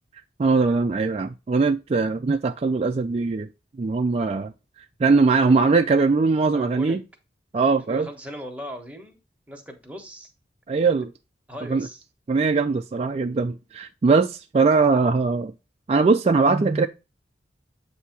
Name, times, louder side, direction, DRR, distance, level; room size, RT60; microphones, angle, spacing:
voice 1, 0.4-3.5 3.8-4.5 5.0-7.0 7.5-8.1 10.7-11.1 11.7-11.9 12.3-15.5 15.9-16.9, right 4 dB, 35° right, 0.3 m, -21 dB
voice 2, 6.5-7.0 7.7-9.2 9.5-10.3 10.7-10.9 11.5-12.0, equal, 10° right, 1.2 m, -39 dB
8.2 x 2.8 x 5.9 m
head